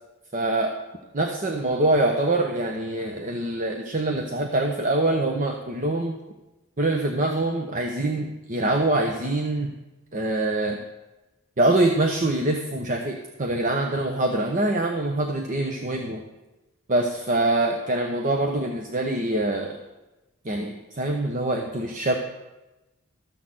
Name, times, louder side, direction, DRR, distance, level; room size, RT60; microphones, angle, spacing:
voice 1, 0.3-0.8 1.1-6.2 6.8-9.7 10.1-10.8 11.6-16.2 16.9-19.8 20.4-22.1, right 2 dB, 35° right, 3 dB, 0.9 m, -24 dB
13.5 x 6.4 x 7.6 m, 1.0 s
head